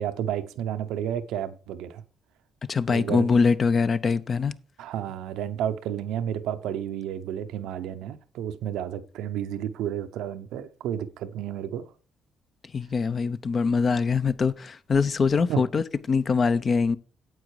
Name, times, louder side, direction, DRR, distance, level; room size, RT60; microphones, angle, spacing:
voice 1, 0.0-2.0 2.9-3.3 4.8-11.9 15.5-15.6, right 10 dB, 90° right, 0.7 m, -31 dB
voice 2, 2.7-4.5 12.7-17.0, left 5 dB, 40° left, 0.8 m, -23 dB
9.3 x 8.1 x 4.8 m
cardioid pair, 90°, 0 cm